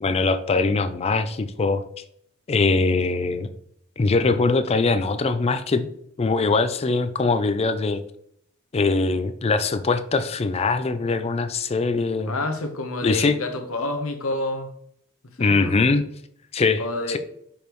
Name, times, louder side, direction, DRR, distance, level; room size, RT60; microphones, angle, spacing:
voice 1, 0.0-1.8 2.5-3.5 4.0-5.9 6.2-8.0 8.7-12.3 13.0-13.4 15.4-16.0 16.5-17.2, left 3 dB, 30° left, 0.4 m, -22 dB
voice 2, 12.3-14.7 15.4-15.8 16.8-17.2, left 2 dB, 70° left, 1.0 m, -28 dB
6.5 x 5.1 x 3.0 m
head